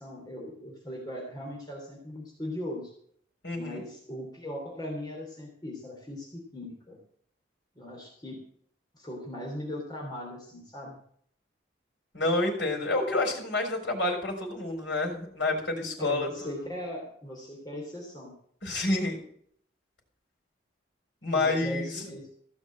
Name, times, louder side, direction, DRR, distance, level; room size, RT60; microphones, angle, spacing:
voice 1, 0.0-2.9 3.5-7.0 7.7-8.4 8.9-11.0 16.0-18.4 21.3-22.3, left 1 dB, 20° left, -2 dB, 3.2 m, -39 dB
voice 2, 3.4-3.8 12.1-16.7 18.6-19.2 21.2-21.9, left 2 dB, 70° left, 1 dB, 4.3 m, -29 dB
15.5 x 6.4 x 7.6 m, 0.62 s
head